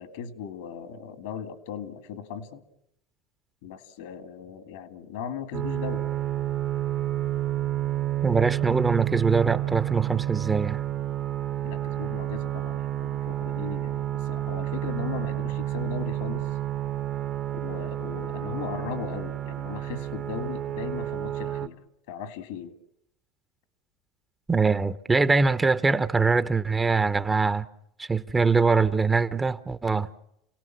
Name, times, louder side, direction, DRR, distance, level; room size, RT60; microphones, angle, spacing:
voice 1, 0.0-2.6 3.6-6.1 11.6-16.5 17.6-21.8 22.1-22.8, left 7 dB, 75° left, 2.0 m, -37 dB
sound 1, 5.5-21.7, right 13 dB, 45° right, 1.3 m, -30 dB
voice 2, 8.2-10.8 24.5-27.7 28.0-30.1, right 4 dB, 20° right, 1.0 m, -23 dB
28.5 x 17.5 x 7.5 m
hypercardioid pair, 85°, 0 cm